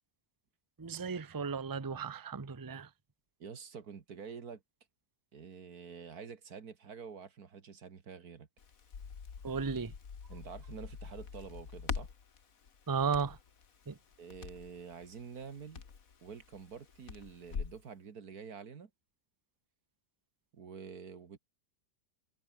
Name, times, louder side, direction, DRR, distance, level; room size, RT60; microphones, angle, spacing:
voice 1, 0.8-2.9 9.4-9.9 12.9-13.4 13.9-14.0, right 5 dB, 25° right, 0.4 m, -34 dB
voice 2, 3.4-4.6 5.3-8.5 10.3-12.1 14.2-15.8 16.2-18.9 20.5-21.4, right 6 dB, 55° right, 2.1 m, -48 dB
Crackle, 8.6-17.8, left 6 dB, 50° left, 2.0 m, -45 dB
omnidirectional pair, 2.0 m